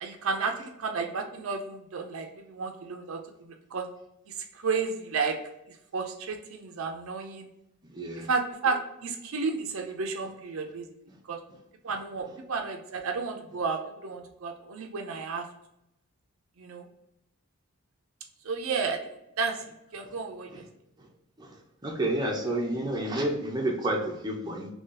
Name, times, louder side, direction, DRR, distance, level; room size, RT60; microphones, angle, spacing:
voice 1, 0.0-3.9 4.3-5.4 5.9-7.5 8.3-10.9 11.3-11.4 11.8-15.5 16.6-16.8 18.4-19.0 19.4-19.6 19.9-20.6, right 4 dB, 80° right, 4 dB, 0.5 m, -32 dB
voice 2, 7.9-8.3 20.0-20.1 20.5-20.6 21.4-21.5 21.8-24.7, right 1 dB, 20° right, -1 dB, 0.7 m, -30 dB
2.9 x 2.8 x 3.7 m, 0.83 s
head